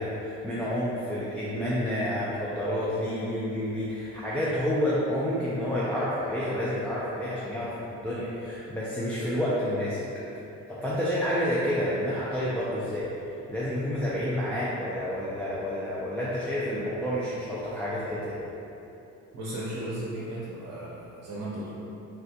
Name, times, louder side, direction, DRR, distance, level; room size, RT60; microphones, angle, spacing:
voice 1, 0.0-10.0 10.7-13.1 13.5-18.4, equal, 5° left, -9 dB, 0.3 m, -29 dB
voice 2, 19.3-21.7, right 1 dB, 70° right, -9 dB, 0.8 m, -35 dB
3.3 x 2.3 x 2.7 m, 3.0 s
cardioid pair, 90°, 30 cm